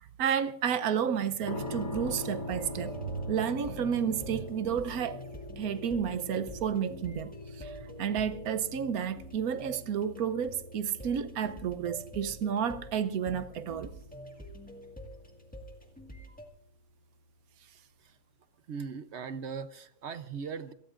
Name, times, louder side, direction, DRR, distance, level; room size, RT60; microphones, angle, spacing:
voice 1, 0.2-5.2 5.6-7.7 8.0-13.9, right 8 dB, 85° right, 1.3 m, -31 dB
sound 1, 1.5-16.3, left 2 dB, 75° left, 3.5 m, -44 dB
sound 2, 1.6-16.5, equal, 5° left, 1.8 m, -48 dB
voice 2, 18.7-20.7, right 6 dB, 55° right, 1.0 m, -39 dB
26.5 x 18.0 x 2.5 m
omnidirectional pair, 1.5 m